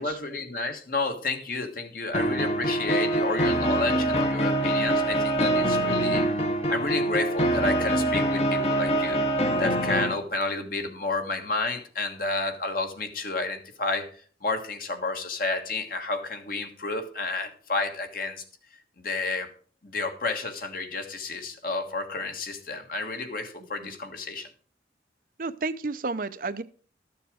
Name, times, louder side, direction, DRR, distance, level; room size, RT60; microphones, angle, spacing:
voice 1, 0.0-6.2 6.7-9.2 9.6-14.1 14.4-18.4 19.0-19.5 19.8-24.5, left 3 dB, 50° left, 5 dB, 1.6 m, -31 dB
sound 1, 2.1-10.1, right 1 dB, 35° left, 1.0 m, -24 dB
voice 2, 25.4-26.6, right 3 dB, 50° right, 11 dB, 0.6 m, -31 dB
13.0 x 7.0 x 5.0 m, 0.43 s
head